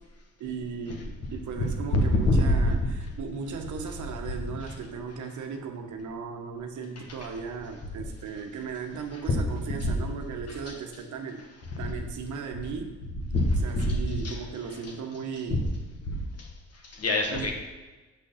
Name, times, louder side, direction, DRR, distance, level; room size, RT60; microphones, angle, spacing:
voice 1, 0.4-11.4 11.8-13.0 13.6-15.6 17.3-17.5, right 5 dB, 75° right, 4 dB, 1.2 m, -36 dB
voice 2, 1.9-2.7 4.7-4.8 7.0-7.3 9.3-9.4 9.8-9.9 10.5-10.8 11.7-11.9 13.1-14.0 14.2-14.4 14.8-14.9 15.5-15.6 16.1-17.5, left 1 dB, 55° left, 2 dB, 1.8 m, -26 dB
6.8 x 6.5 x 5.7 m, 1.2 s
cardioid pair, 90°, 30 cm